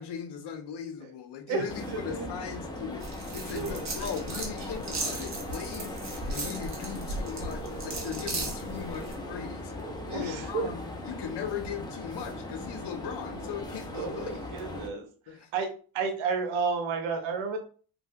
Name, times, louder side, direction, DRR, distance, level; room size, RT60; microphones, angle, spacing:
voice 1, 0.0-3.1 3.3-9.7 10.1-14.5 15.3-15.5, left 7 dB, 60° left, 7 dB, 0.7 m, -39 dB
voice 2, 1.5-2.3 3.5-3.8 10.1-10.7 13.9-15.1 15.5-15.7 15.9-17.6, right 5 dB, 90° right, 5 dB, 0.7 m, -31 dB
sound 1, 1.7-14.9, left 1 dB, 10° left, 0.6 m, -39 dB
sound 2, 3.0-9.1, right 2 dB, 35° right, 1.0 m, -37 dB
3.2 x 2.5 x 2.3 m, 0.40 s
cardioid pair, 95°, 46 cm